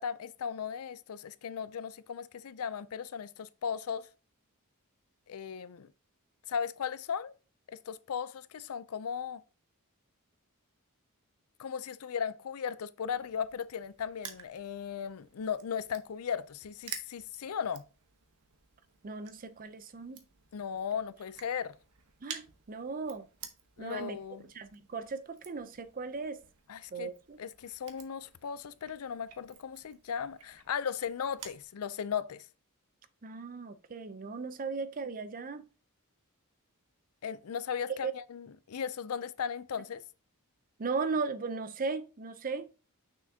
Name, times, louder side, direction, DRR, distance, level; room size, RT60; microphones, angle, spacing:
voice 1, 0.0-4.1 5.3-5.9 6.5-7.3 7.7-9.4 11.6-17.8 20.5-21.8 23.8-24.5 26.7-27.1 27.4-32.5 37.2-40.0, left 7 dB, 70° left, 0.4 m, -37 dB
Crushing, 13.1-31.6, right 8 dB, 85° right, 1.0 m, -52 dB
voice 2, 19.0-20.2 22.2-23.3 23.8-24.2 24.5-26.4 26.9-27.4 33.2-35.6 38.0-38.1 40.8-42.7, right 4 dB, 40° right, 0.6 m, -37 dB
6.3 x 6.0 x 2.7 m
head